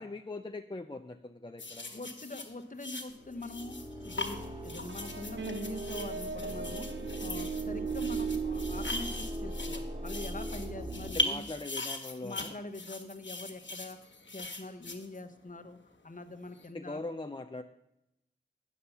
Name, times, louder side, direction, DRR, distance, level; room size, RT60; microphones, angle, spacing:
voice 1, 0.0-2.0 7.7-7.9 11.1-12.6 16.7-17.6, left 2 dB, 25° left, 6 dB, 0.5 m, -41 dB
sound 1, 1.6-15.6 16.5-16.7, left 2 dB, 65° left, 1.4 m, -40 dB
voice 2, 1.9-6.9 7.2-11.5 12.2-14.0 14.3-15.8 16.0-17.0, left 2 dB, 40° left, 7 dB, 0.9 m, -43 dB
sound 2, 3.1-11.1, right 1 dB, 25° right, 1.2 m, -40 dB
sound 3, 4.9-10.1, right 6 dB, 65° right, 0.6 m, -38 dB
9.3 x 7.0 x 5.6 m, 0.85 s
wide cardioid pair, 45°, 20 cm